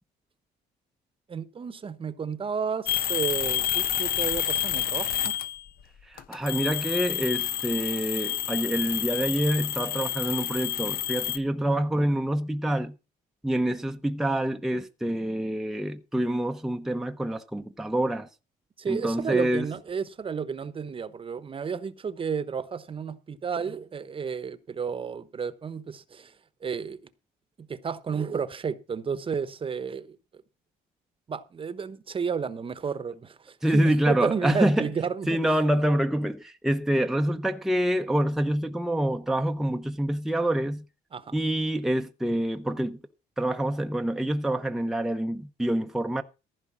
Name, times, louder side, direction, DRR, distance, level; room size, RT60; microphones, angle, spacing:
voice 1, 1.3-5.3 18.8-26.3 26.6-27.1 27.7-30.2 31.3-35.3 41.1-41.3, right 6 dB, 30° right, 1.0 m, -32 dB
sound 1, 2.9-5.7 6.2-11.4, left 11 dB, 60° left, 1.1 m, -29 dB
voice 2, 6.0-12.9 13.4-18.3 18.9-19.7 33.6-34.9 35.3-40.8 41.3-43.0 43.4-46.2, right 1 dB, ahead, 0.8 m, -26 dB
15.0 x 5.0 x 7.3 m
cardioid pair, 110°, 17 cm